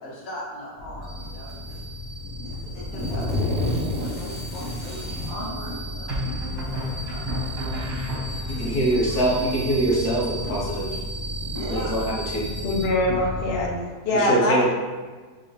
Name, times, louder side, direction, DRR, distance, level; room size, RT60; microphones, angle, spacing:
voice 1, 0.0-1.8 2.4-7.9 9.0-9.2 11.5-11.9, left 1 dB, 65° left, -4 dB, 1.6 m, -40 dB
sound 1, 0.8-13.7, left 1 dB, 30° right, 1.5 m, -33 dB
sound 2, 1.5-1.8 2.4-5.4 6.5-6.6 7.5-7.6 8.1-9.5, left 1 dB, 10° left, 0.5 m, -30 dB
sound 3, 3.4-4.0 6.1-8.7, equal, 70° right, 1.6 m, -32 dB
voice 2, 8.5-11.0 11.7-12.5 14.1-14.7, right 1 dB, 90° left, -4 dB, 1.6 m, -24 dB
voice 3, 12.6-13.7 14.0-14.7, left 1 dB, 50° left, -2 dB, 0.8 m, -23 dB
4.6 x 3.5 x 3.2 m, 1.4 s
omnidirectional pair, 1.6 m